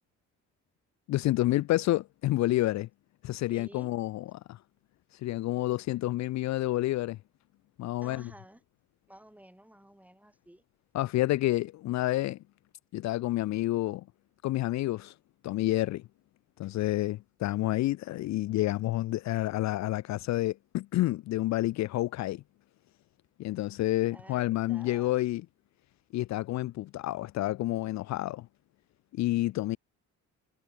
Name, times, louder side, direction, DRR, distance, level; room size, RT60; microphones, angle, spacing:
voice 1, 1.1-2.9 3.2-4.6 5.1-7.2 7.8-8.3 10.9-12.4 12.9-14.0 14.4-15.1 15.4-16.1 16.6-22.4 23.4-25.5 26.1-28.5 29.1-29.8, left 16 dB, 65° left, 0.4 m, -29 dB
voice 2, 3.5-3.9 8.0-8.6 9.1-10.6 24.1-25.1, right 1 dB, 5° right, 2.8 m, -52 dB
cardioid pair, 90°, 30 cm